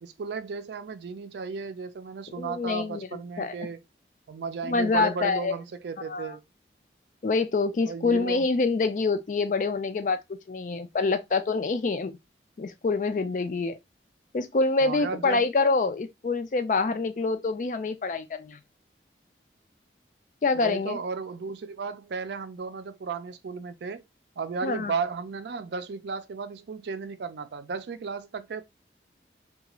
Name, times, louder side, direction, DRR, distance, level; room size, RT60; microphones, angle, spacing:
voice 1, 0.0-3.8 4.3-6.4 7.9-8.5 14.8-15.5 20.5-24.0 24.4-28.6, right 5 dB, 75° right, 0.4 m, -34 dB
voice 2, 2.4-3.6 4.6-5.6 6.1-6.3 7.2-10.2 10.5-12.2 12.6-13.8 14.3-18.6 20.4-21.0 24.6-24.9, left 3 dB, 45° left, 0.3 m, -26 dB
2.4 x 2.3 x 2.9 m
head